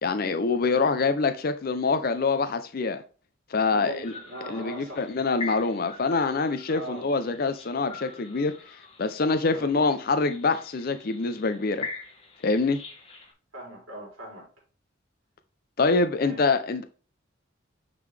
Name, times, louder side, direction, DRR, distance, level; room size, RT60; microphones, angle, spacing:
voice 1, 0.0-3.0 3.5-4.1 4.5-8.5 9.0-11.9 12.4-12.8 15.8-16.8, left 4 dB, 45° left, 0.5 m, -25 dB
voice 2, 3.7-5.1 6.7-7.1 9.4-9.7 13.5-14.5 16.1-16.4, right 1 dB, 65° right, 3.0 m, -40 dB
sound 1, 3.9-13.3, left 4 dB, 25° left, 1.2 m, -43 dB
9.3 x 3.8 x 3.3 m
head